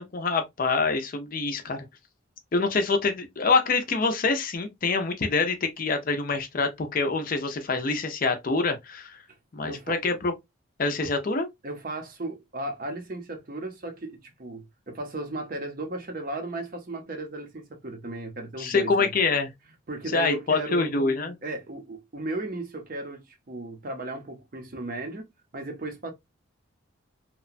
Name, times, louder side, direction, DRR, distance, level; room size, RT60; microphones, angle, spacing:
voice 1, 0.0-1.8 2.5-9.2 9.5-10.3 10.8-11.5 18.6-19.5 20.1-21.4, left 4 dB, 40° left, 0.5 m, -25 dB
voice 2, 9.6-10.0 11.0-11.1 11.6-19.1 19.9-20.9 21.4-25.3 25.5-26.1, right 2 dB, 40° right, 0.6 m, -35 dB
2.9 x 2.1 x 2.4 m
head